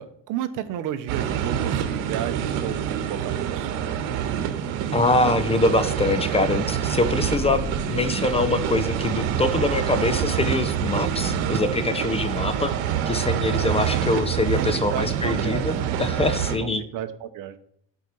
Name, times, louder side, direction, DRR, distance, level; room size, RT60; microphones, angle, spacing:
voice 1, 0.0-3.7 13.9-14.0 14.6-15.7 16.6-17.6, right 11 dB, 60° right, 12 dB, 0.8 m, -32 dB
sound 1, 1.1-16.6, right 9 dB, 80° right, 1.2 m, -26 dB
voice 2, 4.9-12.7 13.1-16.8, left 2 dB, 15° left, 11 dB, 0.6 m, -24 dB
sound 2, 7.2-12.2, left 1 dB, 85° left, 1.0 m, -39 dB
9.1 x 4.7 x 5.4 m, 0.70 s
cardioid pair, 115°, 36 cm